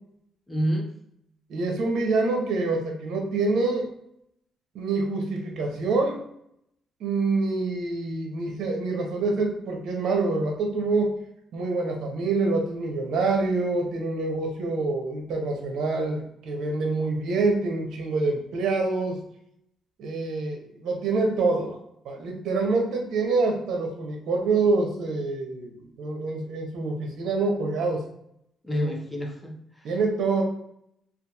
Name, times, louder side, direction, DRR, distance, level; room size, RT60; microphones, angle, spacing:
voice 1, 0.5-1.0 28.6-29.9, equal, 10° left, 0 dB, 0.6 m, -29 dB
voice 2, 1.5-3.9 4.7-6.2 7.0-11.1 11.5-19.2 20.0-21.8 22.0-28.0 28.7-28.9 29.8-30.4, right 3 dB, 75° right, 2 dB, 0.6 m, -26 dB
2.8 x 2.3 x 2.3 m, 0.75 s
cardioid pair, 90°, 0 cm